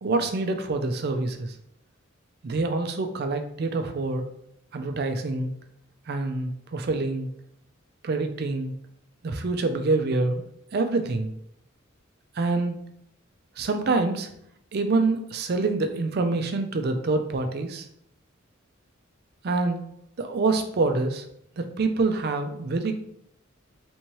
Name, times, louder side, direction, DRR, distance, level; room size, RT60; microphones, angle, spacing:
voice 1, 0.0-1.5 2.4-4.3 4.7-5.5 6.1-7.3 8.0-8.7 9.2-10.4 10.7-11.3 12.4-12.8 13.6-14.3 14.7-17.9 19.4-19.9 20.2-21.2 21.6-22.9, right 3 dB, 50° right, 7 dB, 0.4 m, -26 dB
3.5 x 2.9 x 3.0 m, 0.73 s
head